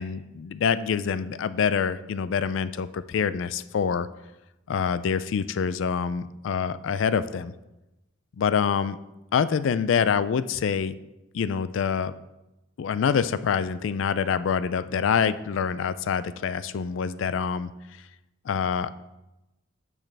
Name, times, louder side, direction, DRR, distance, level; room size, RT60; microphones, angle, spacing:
voice 1, 0.0-4.1 4.7-7.5 8.4-9.0 9.3-10.9 11.3-12.1 12.8-17.7 18.5-18.9, left 6 dB, 65° left, 14 dB, 0.3 m, -26 dB
10.5 x 6.2 x 3.3 m, 0.98 s
head